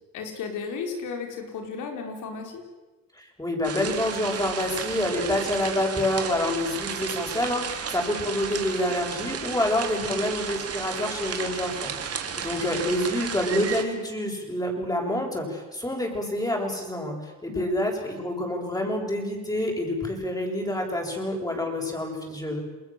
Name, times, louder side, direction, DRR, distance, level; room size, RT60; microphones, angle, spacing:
voice 1, 0.1-2.6 9.9-10.2 17.5-17.7, left 5 dB, 85° left, 4 dB, 5.0 m, -34 dB
voice 2, 3.2-22.6, left 1 dB, 10° left, 1 dB, 7.7 m, -27 dB
sound 1, 3.6-13.8, right 6 dB, 50° right, 3.3 m, -33 dB
29.0 x 21.0 x 7.8 m, 1.2 s
cardioid pair, 90°, 30 cm